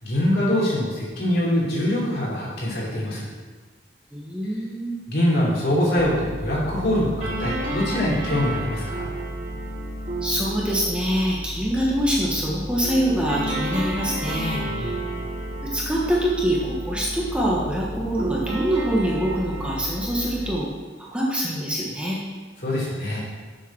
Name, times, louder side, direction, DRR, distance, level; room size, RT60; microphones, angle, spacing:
voice 1, 0.0-3.3 5.1-9.1 14.7-15.1 22.6-23.2, left 1 dB, 60° left, -5 dB, 3.3 m, -24 dB
voice 2, 4.1-4.9 10.2-14.9 15.6-20.7 21.1-22.2, equal, 5° right, -5 dB, 1.2 m, -24 dB
sound 1, 6.0-20.6, right 1 dB, 40° right, 3.3 m, -31 dB
7.4 x 6.9 x 6.4 m, 1.4 s
head